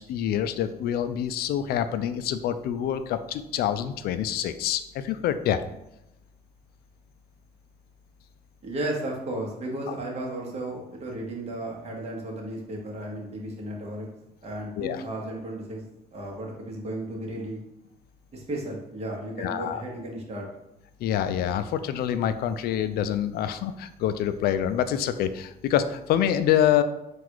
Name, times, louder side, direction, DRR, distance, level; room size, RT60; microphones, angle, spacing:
voice 1, 0.1-5.6 14.8-15.0 19.4-19.8 21.0-26.8, left 10 dB, 65° left, 11 dB, 0.4 m, -26 dB
voice 2, 8.6-14.1 14.4-15.8 16.1-17.6 18.3-20.5, right 1 dB, 40° right, -1 dB, 1.2 m, -34 dB
3.9 x 2.5 x 4.6 m, 0.89 s
cardioid pair, 110°, 17 cm